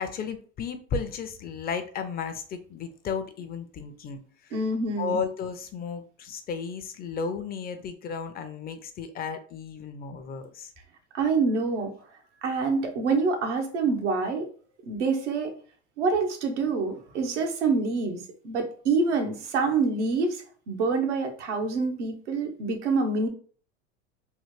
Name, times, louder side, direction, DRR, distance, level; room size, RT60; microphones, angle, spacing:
voice 1, 0.0-4.6 5.0-10.7, left 5 dB, 30° left, 8 dB, 0.4 m, -34 dB
voice 2, 4.5-5.2 11.1-11.9 12.4-14.5 14.9-15.5 16.0-23.3, right 4 dB, 85° right, 4 dB, 0.8 m, -26 dB
3.2 x 2.1 x 3.1 m, 0.43 s
hypercardioid pair, 100°, 35 cm